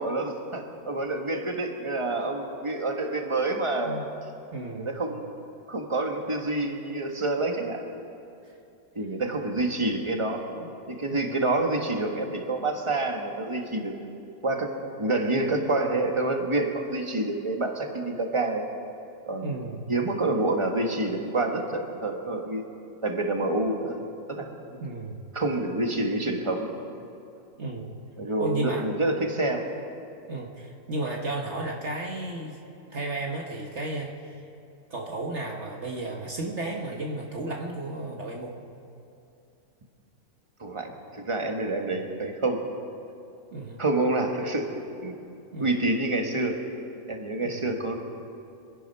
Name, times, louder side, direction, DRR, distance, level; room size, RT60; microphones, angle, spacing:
voice 1, 0.0-4.1 4.8-5.3 5.7-8.0 8.9-10.5 10.9-13.9 14.4-18.6 19.3-19.5 19.9-22.6 23.0-24.0 24.3-24.5 25.3-26.8 28.2-29.7 40.6-42.6 43.8-44.7 45.0-45.2 45.6-46.6 47.1-48.0, right 2 dB, 20° right, 3 dB, 1.3 m, -28 dB
voice 2, 4.5-5.0 10.5-10.7 11.1-11.3 19.4-19.9 24.8-25.2 27.6-27.9 28.4-28.9 30.3-32.6 32.9-34.1 34.9-38.6 43.5-43.8 45.5-45.8 47.4-47.7, right 2 dB, 50° right, 0 dB, 1.4 m, -33 dB
25.5 x 10.0 x 5.5 m, 2.7 s
omnidirectional pair, 1.6 m